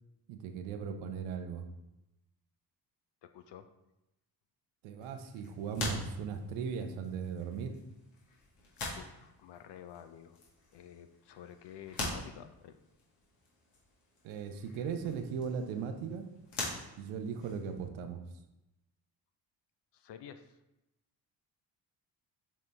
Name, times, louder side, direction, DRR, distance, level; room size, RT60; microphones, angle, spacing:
voice 1, 0.3-1.7 4.8-7.8 14.2-16.3 17.0-18.2, right 6 dB, 80° right, 7 dB, 0.8 m, -38 dB
voice 2, 3.2-3.7 9.0-10.4 10.7-12.8 19.9-20.6, left 9 dB, 60° left, 9 dB, 0.6 m, -50 dB
sound 1, 5.0-17.8, left 2 dB, 80° left, 2.0 m, -45 dB
7.4 x 3.9 x 3.3 m, 0.92 s
hypercardioid pair, 45°, 47 cm